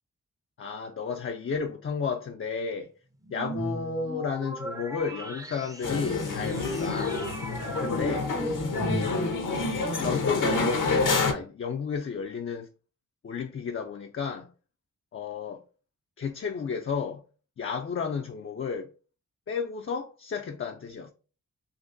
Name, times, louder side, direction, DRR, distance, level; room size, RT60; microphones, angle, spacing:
voice 1, 0.6-2.9 3.3-7.2 7.8-8.3 10.0-12.7 13.2-14.5 15.1-15.6 16.2-17.2 17.6-18.9 19.5-21.1, left 6 dB, 40° left, 0.4 m, -32 dB
sound 1, 3.2-9.5, right 1 dB, 10° right, 0.5 m, -37 dB
sound 2, 5.8-11.3, left 3 dB, 70° left, 0.9 m, -27 dB
3.9 x 2.6 x 2.5 m
cardioid pair, 45°, 33 cm